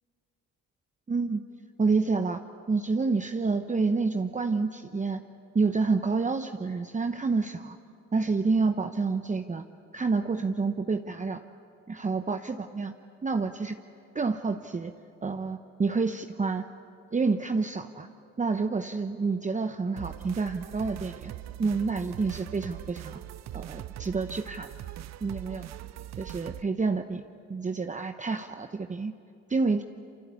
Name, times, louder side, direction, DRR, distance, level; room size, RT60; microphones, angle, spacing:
voice 1, 1.1-1.4 1.8-2.4 2.7-5.2 5.5-7.8 8.1-9.6 9.9-11.4 11.9-12.9 13.2-13.8 14.1-14.9 15.2-16.6 17.1-18.1 18.4-21.3 21.6-23.2 23.5-24.7 25.2-25.7 26.2-27.2 27.5-29.1 29.5-29.8, right 4 dB, 25° right, 7 dB, 1.0 m, -28 dB
sound 1, 20.0-26.6, right 13 dB, 60° right, 0.6 m, -41 dB
27.5 x 25.0 x 8.5 m, 2.6 s
supercardioid pair, 65°, 30 cm